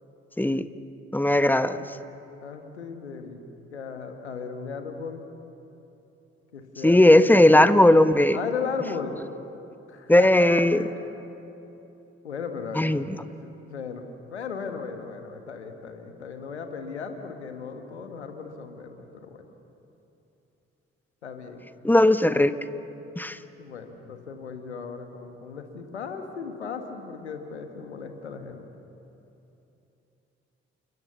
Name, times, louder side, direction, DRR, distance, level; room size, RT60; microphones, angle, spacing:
voice 1, 1.1-1.8 6.8-8.4 10.1-10.8 12.7-13.0 21.8-22.5 23.2-23.4, left 1 dB, 5° left, 11 dB, 1.3 m, -17 dB
voice 2, 2.4-5.3 6.5-7.7 8.3-9.2 9.9-11.0 12.2-13.0 13.4-14.0 14.3-19.4 21.2-21.6 23.6-28.6, left 5 dB, 85° left, 6 dB, 1.6 m, -36 dB
29.5 x 26.5 x 7.1 m, 2.9 s
figure-of-eight pair, 40°, 33 cm